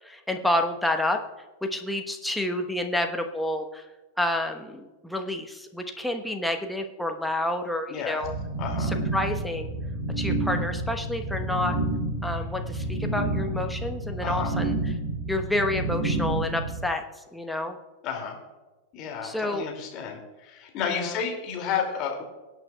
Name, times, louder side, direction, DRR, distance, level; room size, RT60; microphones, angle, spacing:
voice 1, 0.0-1.2 1.6-3.9 4.2-8.3 8.8-9.7 10.2-11.8 12.2-14.8 15.3-17.8 19.2-19.7 20.8-21.2, left 1 dB, 5° left, 4 dB, 1.1 m, -29 dB
voice 2, 7.9-8.2 8.6-8.9 14.2-14.6 18.0-18.4 18.9-22.2, left 7 dB, 35° left, 2 dB, 2.5 m, -31 dB
sound 1, 8.2-16.8, right 2 dB, 50° right, 2.9 m, -29 dB
22.5 x 8.9 x 2.3 m, 1.2 s
figure-of-eight pair, 90°, 0 cm